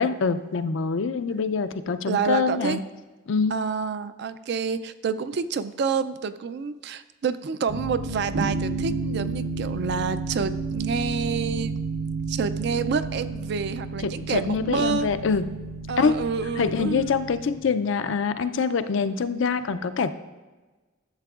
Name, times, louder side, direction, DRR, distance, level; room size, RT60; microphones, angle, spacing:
voice 1, 0.0-2.8 3.3-3.5 14.0-15.4 16.0-16.1 16.6-20.1, left 5 dB, 65° left, 10 dB, 0.4 m, -25 dB
voice 2, 2.1-2.8 3.5-11.7 12.3-15.1 15.9-17.2, right 5 dB, 50° right, 12 dB, 0.3 m, -28 dB
sound 1, 7.7-17.6, right 3 dB, 85° right, 0.8 m, -31 dB
11.5 x 7.5 x 2.4 m, 1.2 s
head